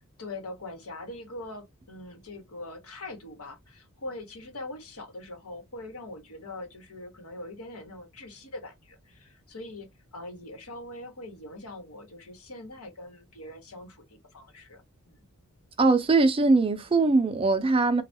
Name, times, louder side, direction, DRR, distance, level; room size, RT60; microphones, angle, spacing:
voice 1, 0.2-15.2, left 2 dB, 85° left, 1.1 m, -42 dB
voice 2, 15.8-18.0, right 3 dB, 25° right, 0.4 m, -21 dB
3.3 x 2.3 x 2.6 m
head